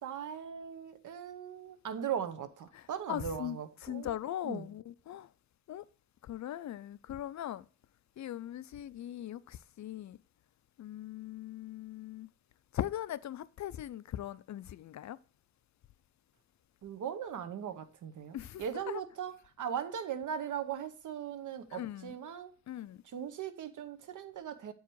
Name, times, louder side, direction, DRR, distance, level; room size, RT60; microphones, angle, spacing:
voice 1, 0.0-4.2 4.4-4.7 16.8-22.5 23.1-24.7, right 8 dB, 90° right, 0.9 m, -39 dB
voice 2, 2.7-3.6 3.8-5.3 5.7-5.8 6.3-7.6 8.2-10.2 10.8-12.3 12.7-15.2 18.3-19.0 21.7-22.1 22.7-23.0, left 12 dB, 70° left, 0.5 m, -40 dB
8.2 x 4.8 x 4.6 m
wide cardioid pair, 120°, 30 cm